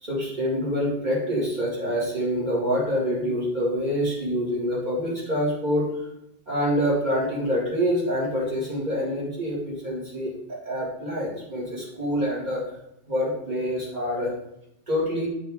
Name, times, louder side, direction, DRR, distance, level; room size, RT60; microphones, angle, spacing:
voice 1, 0.0-5.9 6.5-12.6 13.1-14.3 14.9-15.3, equal, 40° right, -6 dB, 2.3 m, -26 dB
7.3 x 3.7 x 3.6 m, 0.80 s
omnidirectional pair, 1.2 m